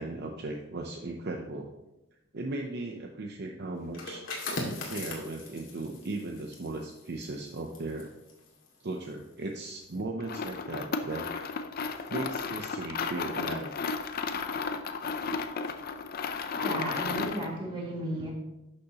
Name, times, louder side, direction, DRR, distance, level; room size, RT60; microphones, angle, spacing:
voice 1, 0.0-1.7 2.3-4.2 4.9-8.1 8.8-11.3 12.1-13.7, right 2 dB, 55° right, 2 dB, 0.7 m, -37 dB
sound 1, 3.8-9.3 9.7-10.0, left 2 dB, 75° left, 2.1 m, -40 dB
sound 2, 10.2-17.5, left 5 dB, 50° left, 0.6 m, -34 dB
voice 2, 16.5-18.3, right 1 dB, 25° right, -2 dB, 2.1 m, -34 dB
11.0 x 6.6 x 2.9 m, 0.97 s
head